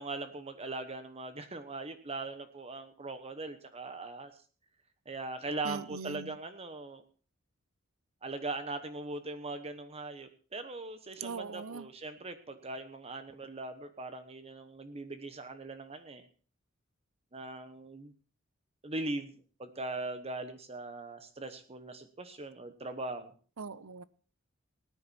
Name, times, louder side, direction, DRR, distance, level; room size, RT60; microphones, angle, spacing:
voice 1, 0.0-4.3 5.1-7.0 8.2-16.2 17.3-18.1 18.8-23.3, right 2 dB, 30° right, 1.1 m, -40 dB
voice 2, 5.6-6.4 11.2-11.9 23.6-24.0, right 5 dB, 90° right, 0.7 m, -40 dB
18.5 x 10.0 x 4.3 m
head